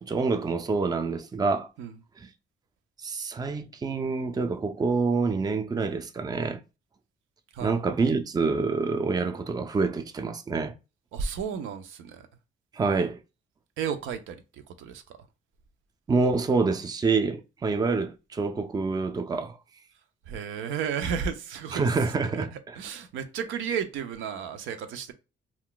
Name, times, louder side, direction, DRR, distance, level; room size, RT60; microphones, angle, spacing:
voice 1, 0.0-1.7 2.2-2.3 3.0-6.6 7.6-10.7 12.7-13.2 16.1-19.6 21.7-22.8, right 4 dB, 20° right, 0.4 m, -27 dB
voice 2, 11.1-12.3 13.8-14.4 14.8-15.0 20.3-21.9 22.3-25.1, right 7 dB, 85° right, 0.5 m, -33 dB
2.3 x 2.2 x 3.7 m
cardioid pair, 90°, 20 cm